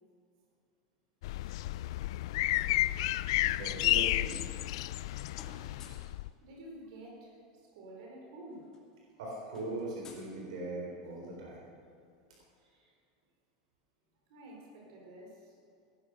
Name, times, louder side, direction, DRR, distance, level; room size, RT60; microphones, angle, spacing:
sound 1, 1.2-6.3, left 16 dB, 60° left, 0.4 m, -31 dB
voice 1, 3.4-4.4 9.2-11.6, right 2 dB, 75° right, -2 dB, 4.1 m, -40 dB
sound 2, 5.3-6.2 7.5-7.6 7.9-8.1 8.4-11.0, left 4 dB, 20° left, 2.5 m, -57 dB
voice 2, 6.4-8.7 14.3-15.6, right 1 dB, 55° right, -1 dB, 4.6 m, -50 dB
18.5 x 11.0 x 6.6 m, 2.4 s
supercardioid pair, 175°, 3 cm